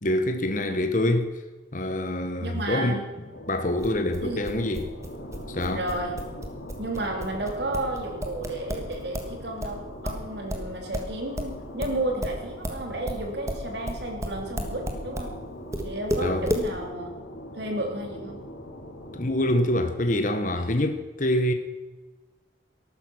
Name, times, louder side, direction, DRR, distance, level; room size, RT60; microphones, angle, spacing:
voice 1, 0.0-1.4 1.7-3.0 3.5-4.9 5.5-5.8 16.2-16.5 19.1-21.5, left 1 dB, 40° left, 1.1 m, -25 dB
voice 2, 2.4-3.0 4.2-4.4 5.7-6.1 6.8-15.3 15.8-17.1 17.5-18.4, right 1 dB, 55° right, 3.0 m, -32 dB
sound 1, 3.3-19.6, equal, 85° left, 2.6 m, -42 dB
sound 2, 3.8-9.3 9.6-15.3 15.7-16.7, equal, 15° right, 1.5 m, -32 dB
14.0 x 12.0 x 6.1 m
head